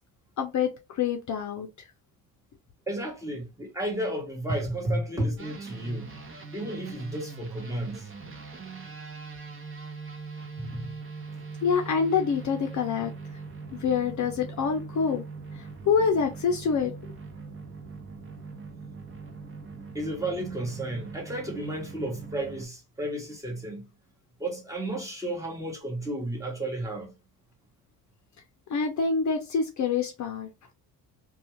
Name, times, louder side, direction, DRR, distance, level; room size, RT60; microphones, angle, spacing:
voice 1, 0.4-1.7 11.6-13.1 13.7-15.2 15.9-16.9 28.7-30.7, left 6 dB, 45° left, 0.6 m, -26 dB
voice 2, 2.9-6.1 6.5-8.1 10.6-10.9 19.9-23.9 24.4-27.1, right 1 dB, 10° right, 1.0 m, -32 dB
sound 1, 5.4-22.7, right 4 dB, 30° right, 0.9 m, -41 dB
2.5 x 2.3 x 3.0 m
supercardioid pair, 80°, 42 cm